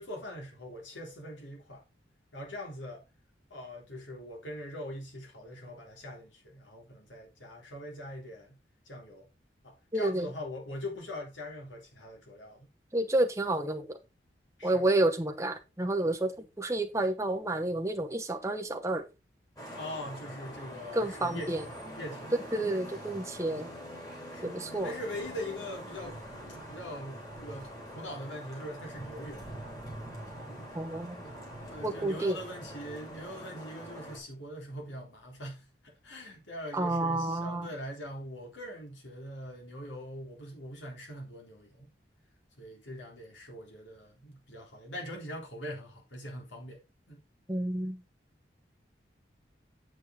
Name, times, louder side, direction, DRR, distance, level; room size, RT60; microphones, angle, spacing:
voice 1, 0.0-1.8 2.3-3.0 3.5-8.6 8.8-9.3 9.6-12.7 14.6-14.8 19.7-21.7 22.0-22.6 23.5-23.7 24.3-24.5 24.8-26.2 26.5-29.5 31.2-31.3 31.6-41.9 42.6-46.8 47.1-47.2, left 1 dB, 90° left, 3.4 m, -42 dB
voice 2, 9.9-10.3 12.9-14.0 14.6-19.1 20.9-21.6 22.5-23.7 24.4-24.9 30.7-31.2 31.8-32.4 36.7-37.7 47.5-48.0, right 2 dB, 15° right, 1.0 m, -30 dB
Vehicle horn car horn honking / Traffic noise roadway noise, 19.6-34.2, equal, 20° left, 3.5 m, -44 dB
8.2 x 7.7 x 3.8 m
head